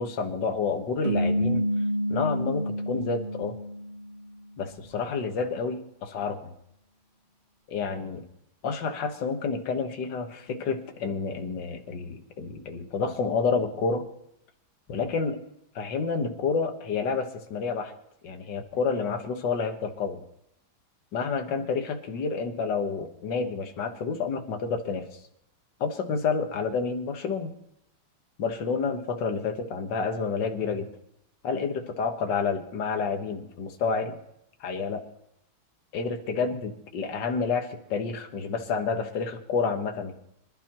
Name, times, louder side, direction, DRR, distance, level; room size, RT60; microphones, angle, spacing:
voice 1, 0.0-1.6 2.1-3.6 4.6-6.5 7.7-8.2 8.6-14.1 14.9-15.4 15.8-17.9 18.2-20.2 21.1-25.1 25.8-27.5 28.4-30.9 31.4-34.2 34.6-35.0 35.9-40.1, left 5 dB, 60° left, 4 dB, 2.0 m, -29 dB
sound 1, 1.0-4.4, equal, 35° right, 1.5 m, -28 dB
25.5 x 12.0 x 3.0 m, 0.79 s
omnidirectional pair, 2.2 m